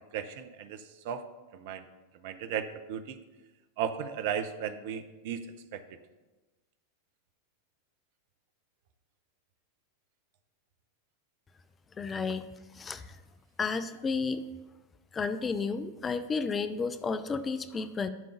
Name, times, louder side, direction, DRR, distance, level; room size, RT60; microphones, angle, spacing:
voice 1, 0.1-1.2 1.5-1.8 2.2-3.2 3.8-6.0, right 8 dB, 55° right, 10 dB, 0.7 m, -36 dB
voice 2, 12.0-12.4 12.7-13.1 13.6-14.4 15.1-18.1, left 4 dB, 20° left, 11 dB, 0.5 m, -32 dB
10.5 x 3.8 x 6.8 m, 1.2 s
figure-of-eight pair, 90°, 0 cm